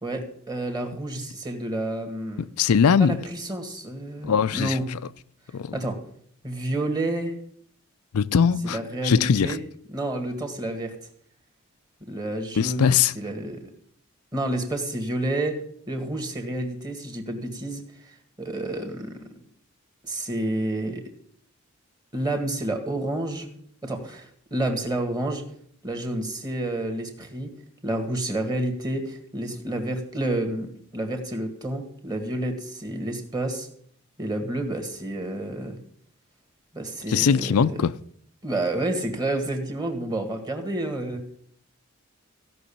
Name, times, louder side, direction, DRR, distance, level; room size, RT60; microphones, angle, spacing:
voice 1, 0.0-2.5 3.0-4.9 5.7-6.0 6.4-7.3 8.6-9.6 9.9-10.9 12.0-13.6 14.3-15.5 15.9-19.2 20.0-21.0 22.1-23.5 23.8-25.5 25.8-27.5 27.8-33.7 34.2-35.8 36.7-37.8 38.4-41.2, right 1 dB, 20° right, 1.9 m, -29 dB
voice 2, 2.4-3.2 4.2-5.0 5.5-5.8 8.1-8.8 9.0-9.6 12.6-13.1 37.1-37.9, left 6 dB, 90° left, 0.5 m, -21 dB
16.0 x 6.2 x 8.6 m
head